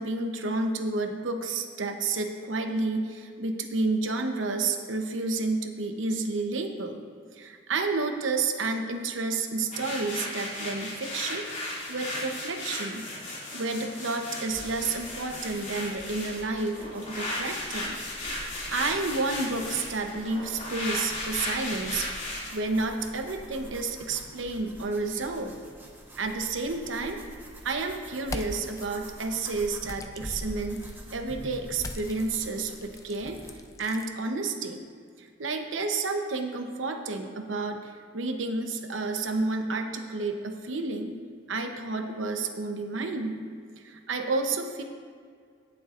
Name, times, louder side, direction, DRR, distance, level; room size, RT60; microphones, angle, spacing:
voice 1, 0.0-7.0 7.3-13.0 13.5-18.0 18.3-22.1 22.5-25.5 26.2-27.2 27.6-30.8 31.1-33.4 33.8-34.9 35.2-41.2 41.5-43.4 43.8-44.8, right 3 dB, 80° right, 5 dB, 0.9 m, -30 dB
sound 1, 9.7-22.5, left 1 dB, 40° left, 2.5 m, -36 dB
sound 2, 14.5-33.6, right 1 dB, 10° right, 1.1 m, -46 dB
sound 3, 28.2-28.9 29.8-31.0 31.8-34.1, left 2 dB, 15° left, 0.4 m, -41 dB
17.5 x 7.0 x 2.5 m, 2.1 s
head